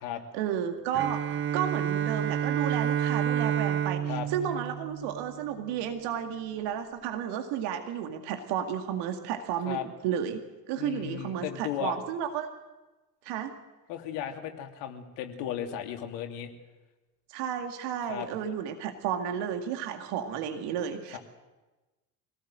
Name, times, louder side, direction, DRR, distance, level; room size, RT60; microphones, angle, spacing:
voice 1, 0.3-10.4 10.7-12.5 13.2-13.5 17.3-21.2, right 9 dB, 55° right, 5 dB, 2.2 m, -32 dB
Bowed string instrument, 0.9-5.7, right 9 dB, 25° right, 0.7 m, -29 dB
voice 2, 10.8-12.0 13.9-16.5 18.1-18.3 21.1-21.2, left 10 dB, 60° left, 4 dB, 3.1 m, -35 dB
25.0 x 18.0 x 7.8 m, 1.1 s
figure-of-eight pair, 65°, 49 cm